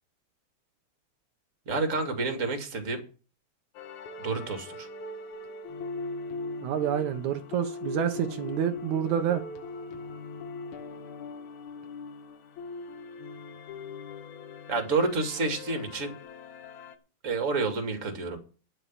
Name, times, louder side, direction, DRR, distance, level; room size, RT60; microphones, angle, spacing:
voice 1, 1.7-3.0 4.2-4.9 14.7-16.2 17.2-18.4, right 3 dB, 30° right, 6 dB, 2.3 m, -29 dB
sound 1, 3.7-17.0, left 3 dB, 80° left, 2.5 m, -40 dB
voice 2, 6.6-9.4, right 9 dB, 75° right, 7 dB, 2.3 m, -28 dB
10.5 x 8.2 x 7.5 m, 0.37 s
omnidirectional pair, 3.5 m